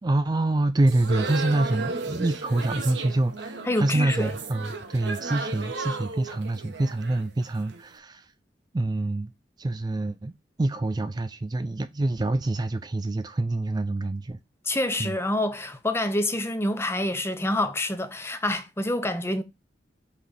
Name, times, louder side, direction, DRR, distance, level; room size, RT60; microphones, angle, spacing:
voice 1, 0.0-8.3 8.7-9.3 9.6-10.3 10.6-14.4 15.0-15.2, right 2 dB, 25° right, 0.4 m, -26 dB
sound 1, 0.8-7.8, right 3 dB, 70° right, 1.1 m, -34 dB
voice 2, 3.7-4.3 14.7-19.4, left 1 dB, 15° left, 0.8 m, -27 dB
5.7 x 3.3 x 5.5 m
head